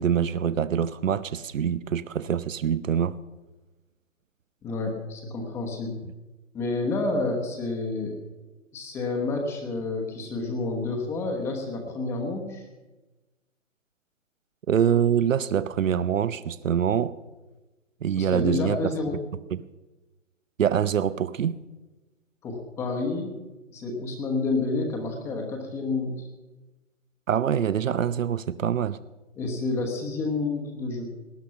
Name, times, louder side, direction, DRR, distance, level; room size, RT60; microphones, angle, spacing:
voice 1, 0.0-3.2 14.7-17.1 18.0-18.8 19.5-19.6 20.6-21.6 27.3-29.0, right 8 dB, 85° right, 16 dB, 0.8 m, -25 dB
voice 2, 4.6-5.9 6.5-8.2 8.7-12.7 18.2-19.2 22.4-23.3 23.7-26.3 29.4-31.1, left 3 dB, 5° left, 2 dB, 1.0 m, -29 dB
19.0 x 10.5 x 5.8 m, 1.1 s
hypercardioid pair, 160°, 38 cm